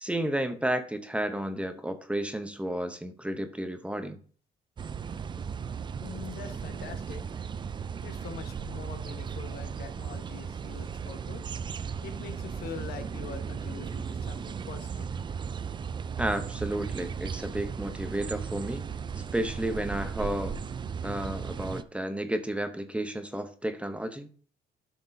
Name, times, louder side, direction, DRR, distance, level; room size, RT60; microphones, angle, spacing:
voice 1, 0.0-4.2 16.2-18.9 19.3-20.6 21.0-24.3, right 1 dB, 5° right, 8 dB, 0.7 m, -32 dB
sound 1, 4.8-21.8, right 6 dB, 25° right, 0.4 m, -36 dB
voice 2, 6.0-7.6 8.0-11.4 12.0-15.1, left 7 dB, 65° left, 7 dB, 1.3 m, -44 dB
11.0 x 6.0 x 2.7 m, 0.43 s
cardioid pair, 110°, 17 cm